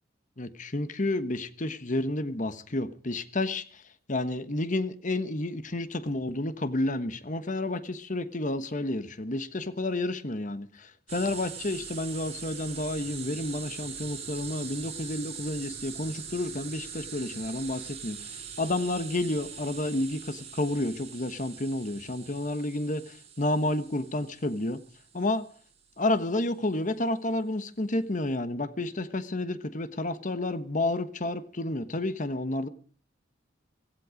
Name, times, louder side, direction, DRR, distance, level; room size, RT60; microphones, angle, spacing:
voice 1, 0.4-3.8 4.1-24.8 25.1-25.4 26.0-32.7, left 2 dB, 45° left, 1.3 m, -30 dB
sound 1, 11.1-25.6, right 7 dB, 35° right, 3.6 m, -42 dB
16.5 x 15.5 x 5.2 m
head